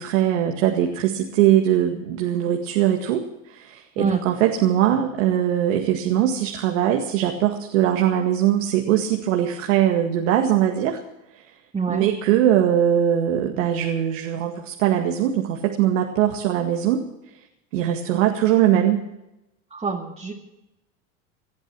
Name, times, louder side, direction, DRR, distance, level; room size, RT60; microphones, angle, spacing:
voice 1, 0.0-11.0 11.9-17.0 17.7-19.0, right 11 dB, 75° right, 3 dB, 2.1 m, -21 dB
voice 2, 11.7-12.1 19.7-20.3, right 4 dB, 15° right, -1 dB, 2.2 m, -26 dB
19.5 x 12.0 x 6.1 m, 0.90 s
supercardioid pair, 105°, 39 cm